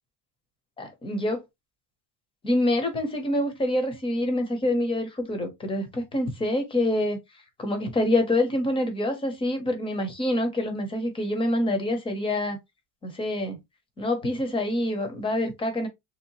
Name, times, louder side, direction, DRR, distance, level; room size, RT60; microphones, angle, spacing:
voice 1, 0.8-1.4 2.4-7.2 7.6-12.6 13.0-13.6 14.0-15.9, left 1 dB, 15° left, 0.5 m, -26 dB
3.2 x 2.7 x 2.8 m
cardioid pair, 175°, 44 cm